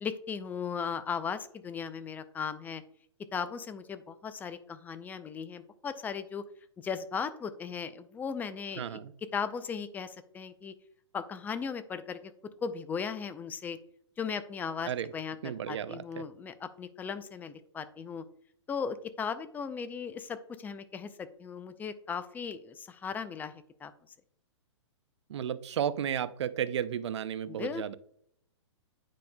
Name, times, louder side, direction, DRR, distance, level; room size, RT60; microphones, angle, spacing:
voice 1, 0.0-2.8 3.3-6.4 6.8-9.0 9.3-10.7 11.1-12.3 12.6-13.8 14.2-18.2 18.7-23.9 27.5-27.9, left 6 dB, 10° left, 11 dB, 0.4 m, -37 dB
voice 2, 8.8-9.1 14.9-15.1 15.4-16.2 25.3-27.9, right 9 dB, 65° right, 14 dB, 0.6 m, -33 dB
9.1 x 5.1 x 2.2 m, 0.67 s
hypercardioid pair, 120°, 16 cm